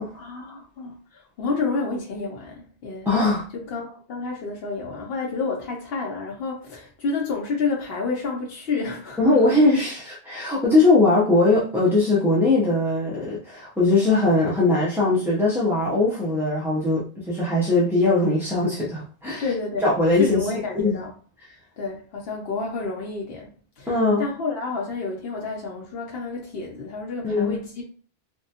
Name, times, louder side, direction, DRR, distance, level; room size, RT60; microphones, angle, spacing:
voice 1, 0.1-3.1 3.5-9.7 19.4-19.9 20.2-21.1 21.8-27.8, left 4 dB, 65° left, 0.8 m, -30 dB
voice 2, 3.1-3.4 9.2-19.5 19.8-20.4 20.8-21.0 23.9-24.2 27.2-27.6, left 2 dB, 5° right, 0.4 m, -20 dB
3.5 x 2.2 x 2.7 m
omnidirectional pair, 1.1 m